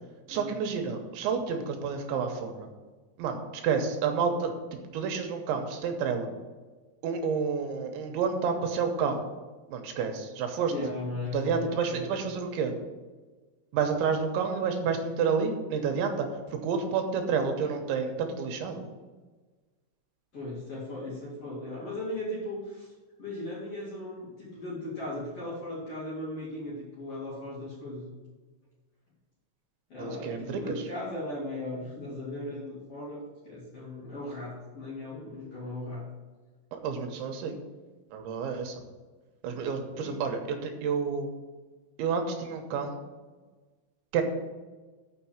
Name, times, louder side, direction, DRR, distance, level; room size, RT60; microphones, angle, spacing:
voice 1, 0.3-2.7 3.2-4.6 4.9-6.3 7.0-9.2 9.7-10.7 11.3-12.7 13.7-18.9 30.0-30.8 36.7-37.6 38.1-38.8 39.4-41.3 42.0-43.0 44.1-44.2, right 6 dB, 80° right, 4 dB, 3.3 m, -29 dB
voice 2, 10.7-12.4 20.3-22.9 23.2-28.1 29.9-36.0 39.9-40.2, left 1 dB, 40° left, -6 dB, 2.4 m, -37 dB
6.7 x 6.7 x 7.1 m, 1.3 s
omnidirectional pair, 5.3 m